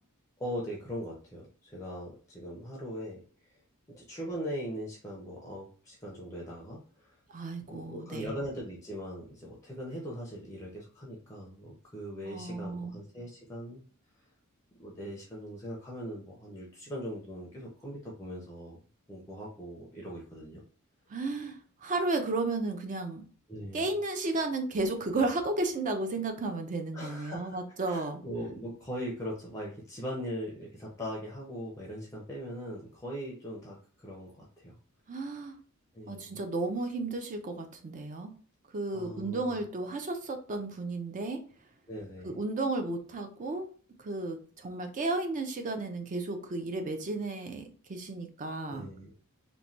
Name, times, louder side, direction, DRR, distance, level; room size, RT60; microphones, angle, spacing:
voice 1, 0.4-3.2 3.9-7.2 7.7-13.8 14.8-18.8 19.1-20.6 23.5-23.9 26.9-27.6 27.9-34.8 35.9-36.4 38.9-39.6 39.9-40.0 41.9-42.4 48.7-49.1, equal, 15° left, -3 dB, 0.5 m, -40 dB
voice 2, 7.3-8.4 12.2-13.0 21.1-23.2 23.7-28.2 35.1-35.6 36.1-38.3 38.7-41.4 42.2-43.7 44.0-48.9, right 2 dB, 35° right, 6 dB, 0.4 m, -33 dB
3.0 x 2.2 x 2.5 m, 0.41 s
head